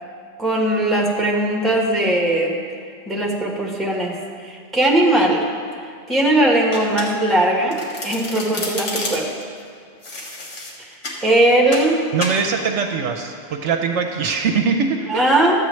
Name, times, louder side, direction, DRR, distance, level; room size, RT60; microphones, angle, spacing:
voice 1, 0.4-2.6 3.1-4.1 4.4-5.4 6.1-7.8 8.0-9.3 10.8-10.9 11.2-12.0 15.1-15.6, right 1 dB, ahead, -2 dB, 1.1 m, -19 dB
Domestic sounds home sounds, 6.7-7.4 7.7-9.4 10.0-11.2 11.7-11.9 12.2-12.4, left 2 dB, 70° left, 1.6 m, -30 dB
voice 2, 12.1-15.2, right 5 dB, 70° right, 4 dB, 0.9 m, -22 dB
13.0 x 8.4 x 3.1 m, 2.2 s
omnidirectional pair, 1.3 m